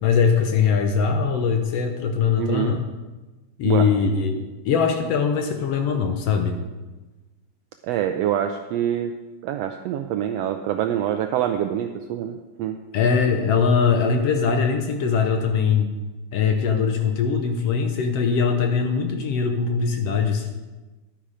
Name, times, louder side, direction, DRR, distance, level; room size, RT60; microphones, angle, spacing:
voice 1, 0.0-2.8 3.6-6.6 12.9-15.9 16.3-20.5, left 6 dB, 70° left, 5 dB, 1.6 m, -21 dB
voice 2, 2.4-2.8 3.6-3.9 7.8-9.1 9.4-12.8, right 10 dB, 85° right, 7 dB, 1.4 m, -25 dB
11.5 x 8.9 x 4.9 m, 1.2 s
omnidirectional pair, 3.4 m